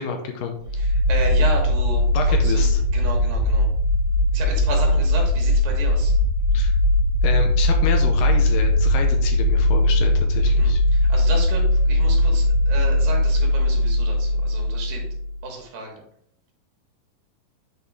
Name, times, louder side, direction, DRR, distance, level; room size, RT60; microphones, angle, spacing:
voice 1, 0.0-0.6 2.1-2.8 6.5-6.8 7.2-10.8, left 6 dB, 75° left, 5 dB, 2.2 m, -29 dB
sound 1, 0.6-15.4, left 1 dB, 55° right, 2.3 m, -19 dB
voice 2, 0.7-3.7 4.3-6.2 10.6-15.1 15.4-16.0, right 3 dB, 75° right, 1 dB, 3.2 m, -33 dB
8.4 x 4.2 x 3.6 m, 0.70 s
omnidirectional pair, 4.1 m